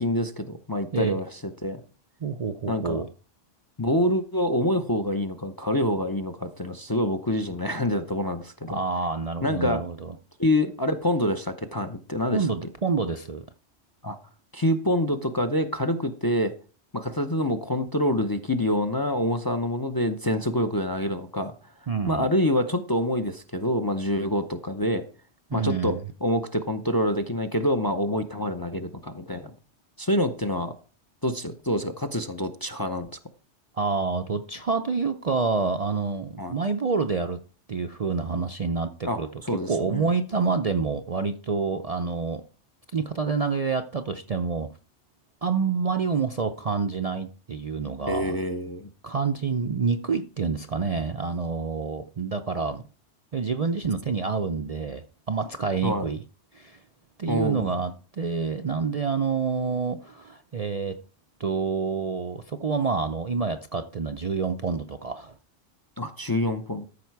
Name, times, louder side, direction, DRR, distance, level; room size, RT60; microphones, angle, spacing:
voice 1, 0.0-1.8 2.7-3.0 3.8-8.8 9.4-9.8 10.4-12.5 14.0-14.2 14.5-16.5 16.9-21.5 22.1-25.0 25.5-29.5 30.0-30.7 31.2-33.1 36.4-36.6 39.0-40.1 48.1-48.9 55.8-56.1 57.3-57.7 66.0-66.8, left 1 dB, 25° left, 0.6 m, -26 dB
voice 2, 2.2-3.1 8.7-10.1 12.3-13.4 21.9-22.3 25.5-26.0 33.8-37.4 37.7-39.3 39.7-42.4 42.9-44.7 45.4-48.4 49.0-52.8 53.3-56.2 56.5-56.8 57.2-61.0 61.4-65.3, right 5 dB, 45° right, 0.5 m, -27 dB
13.5 x 6.4 x 4.7 m
omnidirectional pair, 1.2 m